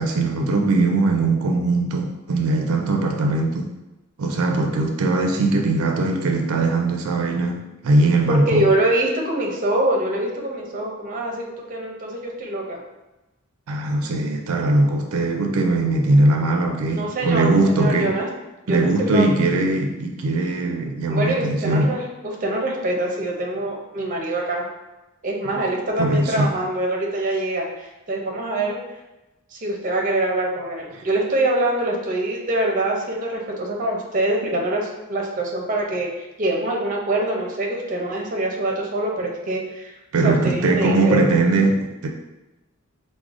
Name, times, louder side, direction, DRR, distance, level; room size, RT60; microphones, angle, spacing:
voice 1, 0.0-3.7 4.2-8.7 13.7-18.1 18.7-21.9 26.0-26.5 40.1-42.1, right 2 dB, 90° right, 3 dB, 0.4 m, -20 dB
voice 2, 8.3-12.8 16.9-18.3 18.7-19.3 21.1-24.6 25.2-28.8 29.5-36.1 36.4-40.0 40.2-41.2, right 1 dB, 40° right, 0 dB, 0.5 m, -24 dB
4.7 x 2.1 x 2.4 m, 1.0 s
head